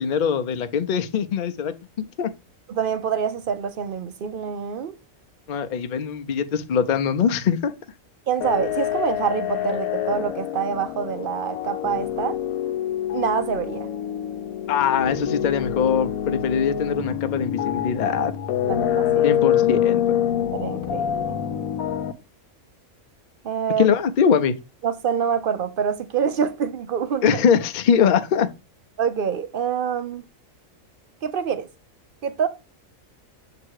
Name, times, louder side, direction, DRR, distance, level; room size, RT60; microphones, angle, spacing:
voice 1, 0.0-2.3 5.5-7.7 14.7-18.3 19.2-20.0 23.8-24.6 27.2-28.5, left 7 dB, 55° left, 0.5 m, -22 dB
voice 2, 2.7-4.9 8.3-12.4 13.1-13.9 18.6-19.3 20.5-21.4 23.4-23.9 24.8-27.4 29.0-30.2 31.2-31.7 32.2-32.5, right 7 dB, 60° right, 0.6 m, -26 dB
sound 1, 8.4-22.1, left 10 dB, 85° left, 1.1 m, -26 dB
7.4 x 2.9 x 4.5 m
omnidirectional pair, 1.4 m